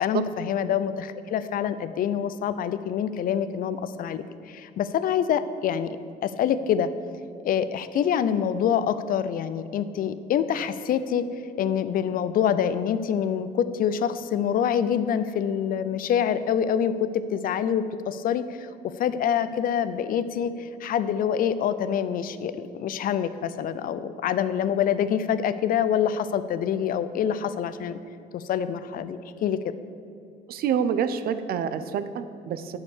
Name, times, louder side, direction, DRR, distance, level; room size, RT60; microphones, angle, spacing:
voice 1, 0.0-6.9 7.4-11.2 11.6-28.0 28.3-29.6, left 8 dB, 55° left, 13 dB, 0.6 m, -26 dB
voice 2, 30.5-32.8, right 8 dB, 65° right, 12 dB, 0.7 m, -27 dB
9.8 x 6.7 x 6.3 m, 2.6 s
cardioid pair, 110°, 17 cm